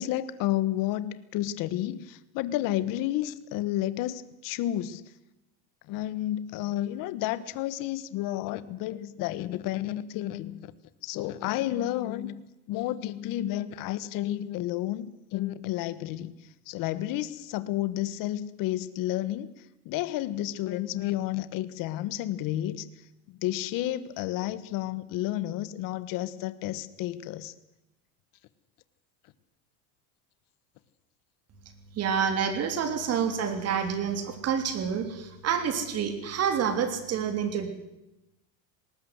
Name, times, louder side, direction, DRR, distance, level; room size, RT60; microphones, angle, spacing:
voice 1, 0.0-5.0 5.9-10.7 11.0-12.4 12.7-16.3 16.7-19.5 19.8-22.9 23.4-27.5, left 14 dB, 50° left, 15 dB, 1.3 m, -31 dB
voice 2, 31.9-37.7, right 7 dB, 35° right, 8 dB, 3.3 m, -28 dB
20.0 x 19.0 x 8.1 m, 0.94 s
cardioid pair, 150°, 41 cm